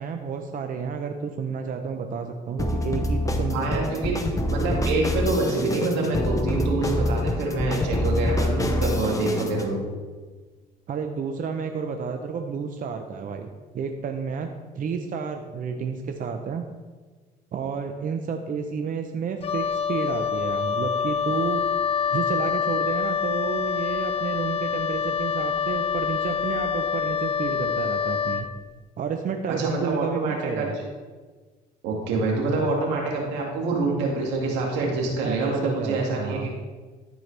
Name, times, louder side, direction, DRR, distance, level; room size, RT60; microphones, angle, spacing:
voice 1, 0.0-3.9 10.9-13.5 13.7-16.7 17.5-21.6 22.1-28.5 29.0-30.8 35.2-36.5, right 6 dB, 50° right, 5 dB, 0.7 m, -31 dB
sound 1, 2.6-9.7, left 1 dB, 20° left, 1.0 m, -26 dB
voice 2, 3.5-4.2 4.5-9.8 29.5-30.7 31.8-36.5, right 3 dB, 85° right, -1 dB, 2.1 m, -26 dB
Wind instrument woodwind instrument, 19.4-28.5, left 7 dB, 35° left, 0.5 m, -26 dB
13.5 x 4.6 x 3.4 m, 1.4 s
supercardioid pair, 80°, 17 cm